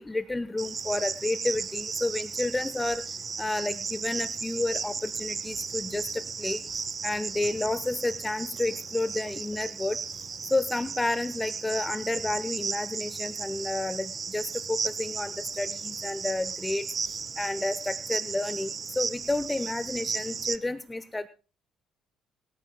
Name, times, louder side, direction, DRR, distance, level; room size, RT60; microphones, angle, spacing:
voice 1, 0.0-3.0 3.4-6.6 7.0-10.0 10.5-16.9 17.4-18.7 19.0-21.3, left 2 dB, 15° left, 15 dB, 0.9 m, -30 dB
Cricket, 0.6-20.6, right 5 dB, 35° right, 1.0 m, -35 dB
23.5 x 13.5 x 2.2 m, 0.35 s
figure-of-eight pair, 50°, 0 cm